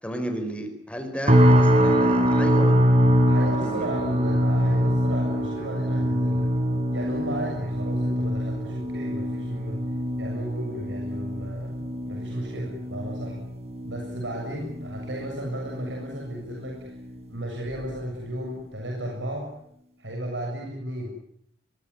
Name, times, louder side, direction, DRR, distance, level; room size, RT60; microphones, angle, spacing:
voice 1, 0.0-2.9 3.5-3.9, equal, 5° left, 6 dB, 4.7 m, -33 dB
sound 1, 1.3-16.5 16.8-17.2 17.7-17.9, equal, 35° right, 4.3 m, -24 dB
voice 2, 3.2-6.5 6.9-9.8 10.2-13.4 13.8-16.9 17.3-19.5 20.0-21.2, right 1 dB, 80° right, 0 dB, 7.3 m, -34 dB
23.0 x 22.0 x 9.8 m, 0.72 s
head